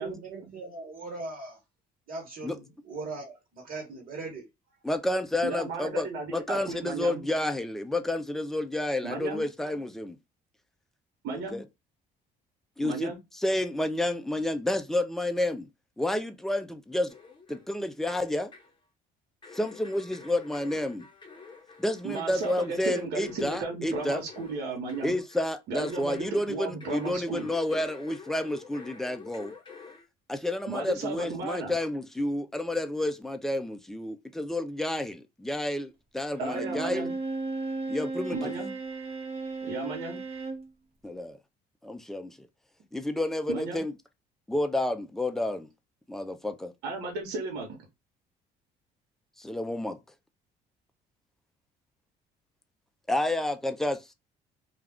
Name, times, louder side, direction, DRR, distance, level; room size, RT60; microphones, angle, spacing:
voice 1, 0.0-1.6 2.1-4.4, right 3 dB, 55° right, 1.1 m, -39 dB
voice 2, 4.8-10.2 11.5-11.6 12.8-15.7 16.0-17.1 17.5-18.5 19.5-21.1 21.8-24.2 25.0-29.5 30.3-37.1 37.9-38.5 41.0-41.4 41.8-42.5 42.9-43.9 44.5-45.7 46.1-46.7 49.4-50.0 53.1-54.1, left 1 dB, ahead, 0.4 m, -30 dB
voice 3, 5.4-7.2 9.0-9.4 11.2-11.6 12.8-13.2 22.0-25.2 25.7-27.5 30.7-31.7 36.4-37.1 38.3-38.7 39.6-40.2 43.5-43.8 46.8-47.8, right 3 dB, 85° right, 1.0 m, -34 dB
sound 1, 17.1-17.8 18.1-18.8 19.4-26.5 26.8-30.1, left 4 dB, 30° left, 0.9 m, -49 dB
Bowed string instrument, 36.4-40.7, right 3 dB, 35° right, 0.8 m, -35 dB
2.3 x 2.3 x 3.4 m
cardioid pair, 110°, 17 cm